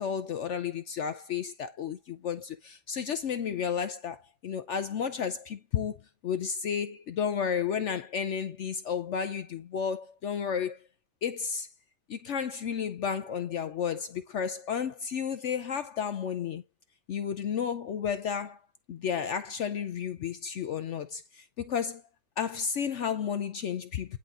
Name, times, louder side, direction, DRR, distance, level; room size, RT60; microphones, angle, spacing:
voice 1, 0.0-6.0 6.2-10.8 11.2-11.7 12.1-16.6 17.1-18.6 18.9-22.0 22.4-24.2, left 7 dB, 65° left, 0.7 m, -32 dB
10.5 x 3.7 x 2.5 m
omnidirectional pair, 1.8 m